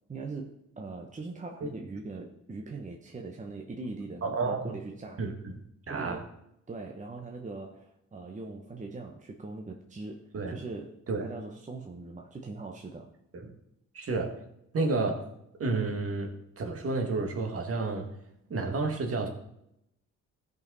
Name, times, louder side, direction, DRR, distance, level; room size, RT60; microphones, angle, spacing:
voice 1, 0.1-5.3 5.9-6.3 6.7-13.1, right 3 dB, 25° right, 1 dB, 1.0 m, -41 dB
voice 2, 4.2-4.7 5.2-5.3 5.9-6.2 10.3-10.6 11.1-11.3 13.3-13.5 13.9-14.4 14.7-15.3 15.6-18.1 18.5-19.3, right 3 dB, 50° right, 3 dB, 1.9 m, -30 dB
15.0 x 5.4 x 4.1 m, 0.80 s
cardioid pair, 90°, 30 cm